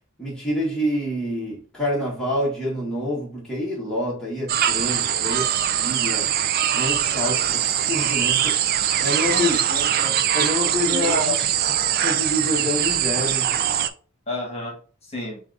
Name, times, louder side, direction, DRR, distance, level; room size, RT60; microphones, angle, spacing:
voice 1, 0.2-5.4 5.8-6.3 6.7-8.6 9.0-9.5 10.3-11.4 12.0-13.5, left 1 dB, 5° left, 1.4 m, -27 dB
sound 1, 4.5-13.9, right 10 dB, 45° right, 0.3 m, -22 dB
voice 2, 9.3-10.2 10.9-11.5 14.3-14.7 15.0-15.4, left 1 dB, 30° left, 1.4 m, -32 dB
7.0 x 2.6 x 2.5 m
head